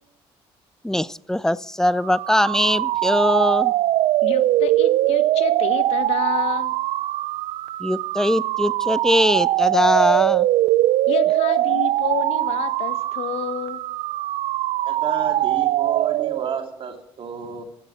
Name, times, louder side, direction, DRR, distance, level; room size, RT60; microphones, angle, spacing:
voice 1, 0.8-3.7 7.8-10.5, left 1 dB, 5° left, 19 dB, 0.5 m, -21 dB
sound 1, 2.0-16.7, right 15 dB, 70° right, 0.4 m, -22 dB
voice 2, 4.2-6.7 11.1-13.8, left 11 dB, 75° left, 12 dB, 1.2 m, -29 dB
voice 3, 14.8-17.6, right 6 dB, 55° right, 4 dB, 3.0 m, -31 dB
15.5 x 7.7 x 7.4 m, 0.74 s
supercardioid pair, 80°, 11 cm